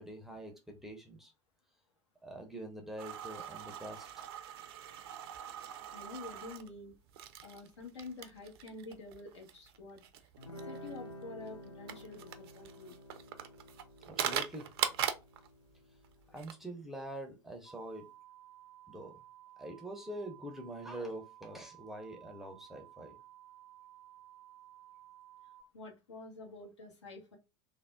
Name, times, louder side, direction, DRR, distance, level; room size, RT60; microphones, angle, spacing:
voice 1, 0.0-1.3 2.2-4.1 14.1-14.7 16.3-18.1 18.9-19.2 19.6-23.2, right 1 dB, ahead, 0.6 m, -45 dB
sound 1, 3.0-15.5 15.7-15.8 16.0-16.5, right 9 dB, 55° right, 0.4 m, -40 dB
voice 2, 5.9-6.9 7.4-10.0 10.5-13.0 25.7-27.4, left 3 dB, 70° left, 1.0 m, -48 dB
Guitar, 10.4-17.5, equal, 85° left, 0.5 m, -52 dB
sound 2, 17.7-25.6, right 13 dB, 15° left, 0.9 m, -56 dB
3.3 x 2.1 x 2.3 m
figure-of-eight pair, 80°, 15 cm